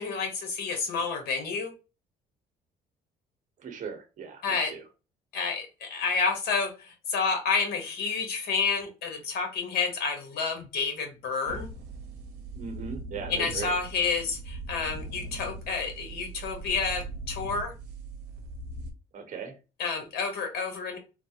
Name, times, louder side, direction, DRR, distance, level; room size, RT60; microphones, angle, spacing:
voice 1, 0.0-1.7 4.4-4.7 5.3-11.7 13.3-17.7 19.8-21.0, left 5 dB, 70° left, 4 dB, 1.1 m, -29 dB
voice 2, 3.6-4.8 12.5-13.7 19.1-19.5, right 5 dB, 50° right, 5 dB, 1.0 m, -38 dB
sound 1, 11.5-18.9, right 2 dB, 75° right, 0.8 m, -40 dB
3.2 x 2.1 x 2.7 m, 0.30 s
cardioid pair, 110°, 17 cm